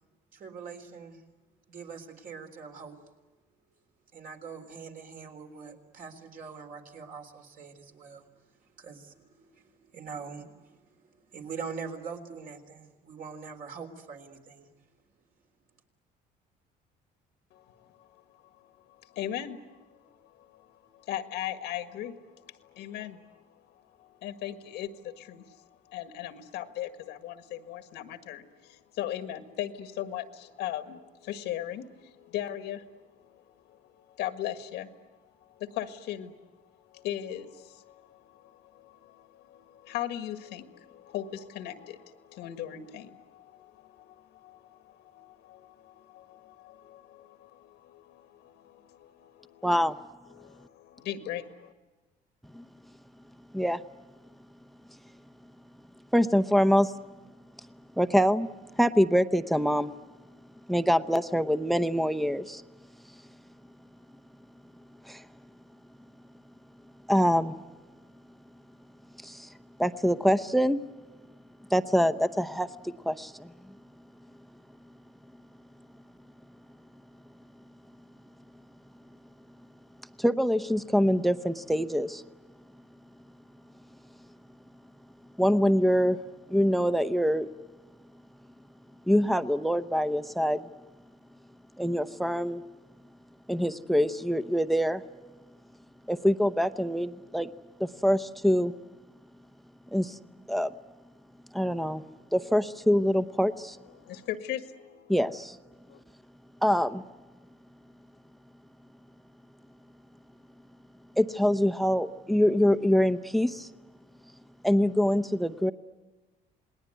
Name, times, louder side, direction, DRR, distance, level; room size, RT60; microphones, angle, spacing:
voice 1, 0.3-1.2 1.7-3.0 4.1-8.4 8.7-14.7, right 5 dB, 55° right, 3 dB, 3.6 m, -43 dB
voice 2, 17.5-18.2 18.9-35.1 35.4-36.6 36.9-49.7 50.2-51.7 103.8-105.1 105.9-106.0, left 11 dB, 85° left, 9 dB, 1.7 m, -39 dB
voice 3, 49.6-49.9 52.5-52.6 53.5-53.8 56.1-56.9 58.0-58.5 58.8-59.9 60.7-62.6 65.1-65.2 67.1-67.5 69.2-69.5 69.8-70.8 71.7-73.5 80.2-82.2 85.4-86.2 86.5-87.5 89.1-90.7 91.8-92.6 93.5-95.0 96.1-97.5 97.8-98.7 99.9-100.2 100.5-100.7 101.5-102.0 102.3-103.8 105.1-105.6 106.6-107.0 111.2-113.7 114.6-115.7, equal, ahead, 12 dB, 0.8 m, -25 dB
28.0 x 20.0 x 9.5 m, 1.2 s
cardioid pair, 110°, 17 cm